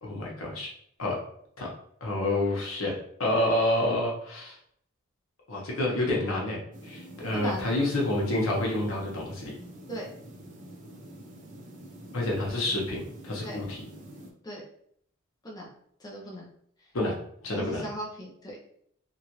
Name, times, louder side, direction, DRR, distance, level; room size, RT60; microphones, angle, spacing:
voice 1, 0.0-0.7 1.0-1.2 1.6-1.7 2.0-2.9 3.2-4.6 5.5-9.5 12.1-13.9 16.9-17.2 17.4-17.8, left 1 dB, 70° left, -2 dB, 1.0 m, -28 dB
sound 1, 6.7-14.3, right 1 dB, 40° right, 0.5 m, -46 dB
voice 2, 7.3-7.7 9.9-10.1 13.4-13.6 14.4-14.6 15.4-15.7 16.0-16.5 17.5-18.6, equal, 20° left, -3 dB, 0.5 m, -37 dB
3.0 x 2.4 x 2.9 m, 0.66 s
head